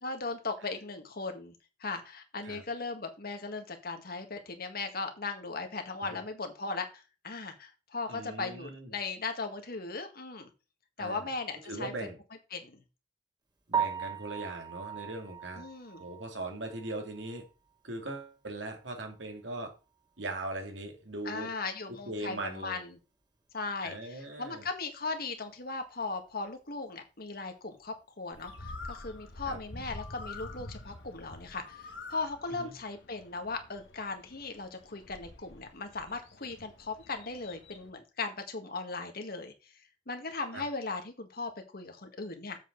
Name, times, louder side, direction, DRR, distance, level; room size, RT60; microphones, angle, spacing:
voice 1, 0.0-1.5 1.8-10.5 11.0-11.9 12.5-12.8 15.6-16.0 21.2-22.9 23.5-39.7 40.1-42.6, left 3 dB, 55° left, 5 dB, 1.7 m, -38 dB
voice 2, 8.1-8.9 11.0-11.3 11.7-12.2 13.7-15.6 16.0-17.4 17.8-19.7 20.2-21.5 22.1-22.8 23.8-24.7 29.5-29.6 32.6-32.7 40.5-40.6, right 2 dB, 80° right, 3 dB, 2.4 m, -39 dB
Piano, 13.7-17.7 18.0-18.2 18.7-18.8 19.1-19.2 22.3-22.4 30.9-31.1, right 7 dB, 25° right, 1.9 m, -37 dB
Bird, 28.3-37.9, left 2 dB, 75° left, 1.6 m, -47 dB
7.8 x 7.4 x 3.9 m, 0.30 s
head